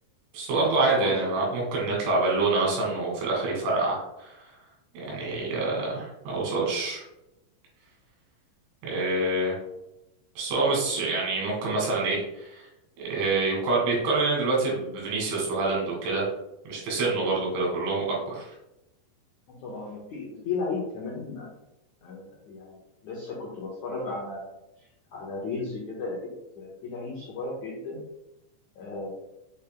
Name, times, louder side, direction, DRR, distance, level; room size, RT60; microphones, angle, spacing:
voice 1, 0.3-4.4 4.9-7.0 8.8-9.6 10.4-12.7 13.0-16.3 16.7-18.5, right 3 dB, 85° right, -4 dB, 4.7 m, -26 dB
voice 2, 0.9-1.2 19.6-21.5 22.0-22.8 23.0-24.5 24.8-26.3 26.6-28.0 28.7-29.1, left 3 dB, 90° left, -4 dB, 1.6 m, -34 dB
8.3 x 5.6 x 2.2 m, 0.90 s
omnidirectional pair, 5.3 m